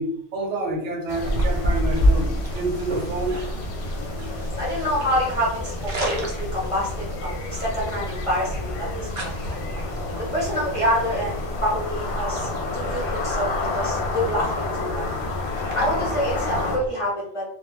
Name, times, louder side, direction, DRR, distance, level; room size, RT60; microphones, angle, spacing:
voice 1, 0.0-3.4, right 2 dB, 75° right, 0 dB, 1.0 m, -28 dB
sound 1, 1.1-16.8, left 3 dB, 70° left, 0.8 m, -31 dB
sound 2, 1.2-16.9, equal, 50° right, 0.6 m, -29 dB
voice 2, 4.6-9.4 10.3-15.1 15.5-17.4, equal, 35° left, -6 dB, 0.6 m, -27 dB
2.2 x 2.1 x 3.2 m, 0.72 s
omnidirectional pair, 1.2 m